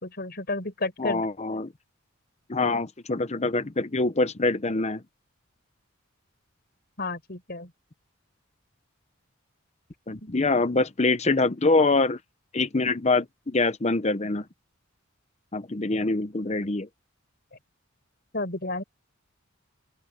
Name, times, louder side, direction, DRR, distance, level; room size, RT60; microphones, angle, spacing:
voice 1, 0.0-1.3 7.0-7.7 18.3-18.8, left 2 dB, 50° left, 4.9 m, -31 dB
voice 2, 1.0-1.7 2.5-5.0 10.1-12.2 12.5-14.4 15.5-16.9, left 3 dB, 30° left, 0.8 m, -24 dB
open air
head